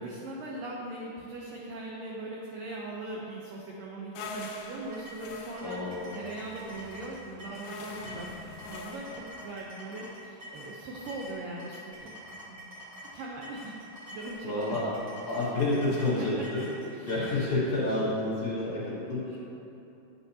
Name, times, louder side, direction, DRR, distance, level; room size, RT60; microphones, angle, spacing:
voice 1, 0.0-8.3 8.7-12.1 12.4-12.7 13.1-13.7 14.1-14.8 15.3-15.5 16.2-17.4 18.8-19.4, right 2 dB, 80° right, -3 dB, 1.9 m, -40 dB
sound 1, 4.2-9.3, left 2 dB, 80° left, 2.6 m, -44 dB
sound 2, 4.9-17.4, equal, 65° right, 1.0 m, -46 dB
voice 2, 5.6-6.1 14.4-14.9 15.2-16.6 17.1-19.2, left 2 dB, 55° left, -9 dB, 2.7 m, -29 dB
10.5 x 8.4 x 2.8 m, 2.9 s
omnidirectional pair, 4.8 m